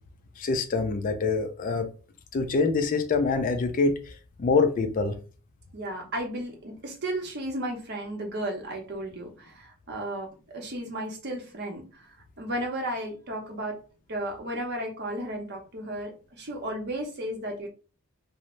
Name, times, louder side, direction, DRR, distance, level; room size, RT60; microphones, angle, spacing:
voice 1, 0.4-1.9 2.3-5.2, left 4 dB, 35° left, 0.3 m, -25 dB
voice 2, 5.7-12.1 12.4-13.8 14.1-17.7, right 1 dB, 50° right, 0.7 m, -34 dB
2.6 x 2.0 x 3.0 m
head